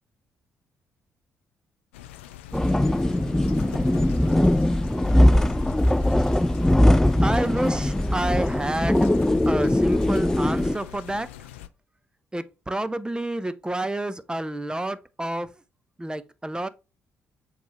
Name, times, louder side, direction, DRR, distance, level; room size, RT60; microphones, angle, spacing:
sound 1, 1.9-11.7, left 13 dB, 85° left, 0.4 m, -43 dB
sound 2, 2.5-10.8, left 1 dB, 5° left, 0.3 m, -20 dB
voice 1, 7.2-9.1 9.5-11.3 12.3-15.5 16.0-16.7, right 1 dB, 15° right, 0.8 m, -29 dB
6.9 x 3.2 x 4.2 m
hypercardioid pair, 40°, 6 cm